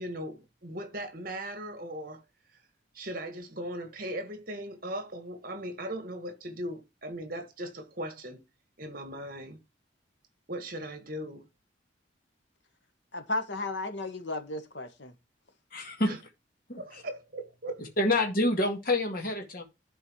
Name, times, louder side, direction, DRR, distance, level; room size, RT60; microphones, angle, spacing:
voice 1, 0.0-2.2 2.9-8.4 8.8-9.6 10.5-11.5 16.0-16.2 16.8-17.9, right 1 dB, 50° right, 1.9 m, -38 dB
voice 2, 13.1-15.1, left 2 dB, 75° left, 1.7 m, -34 dB
voice 3, 15.7-16.1 16.7-17.0 18.0-19.6, left 2 dB, 50° left, 2.0 m, -27 dB
11.5 x 4.6 x 4.6 m
head